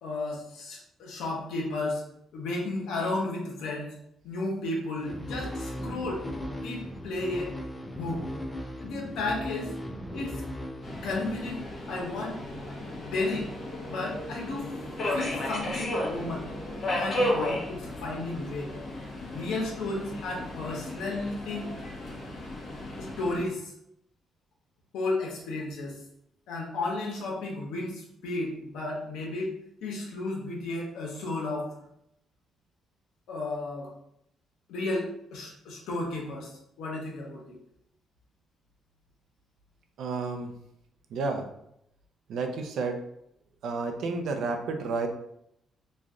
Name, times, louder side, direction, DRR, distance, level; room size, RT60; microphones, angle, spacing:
voice 1, 0.0-2.0 2.3-3.9 4.2-6.3 6.6-7.6 7.9-8.2 8.8-9.7 10.1-10.4 11.0-11.6 11.9-13.5 13.9-14.7 15.1-16.4 16.9-18.7 19.3-21.7 23.0-23.7 24.9-26.0 26.5-29.5 29.8-31.7 33.3-33.9 34.7-37.5, left 2 dB, 85° left, -1 dB, 1.0 m, -33 dB
sound 1, 5.0-12.4, equal, 10° left, 0.5 m, -38 dB
Subway metro underground, 10.8-23.4, left 1 dB, 50° left, 1.0 m, -34 dB
voice 2, 40.0-40.5 41.1-41.4 42.3-43.0 43.6-45.1, right 4 dB, 75° right, 4 dB, 0.5 m, -31 dB
3.1 x 2.4 x 3.7 m, 0.75 s
cardioid pair, 90°, 0 cm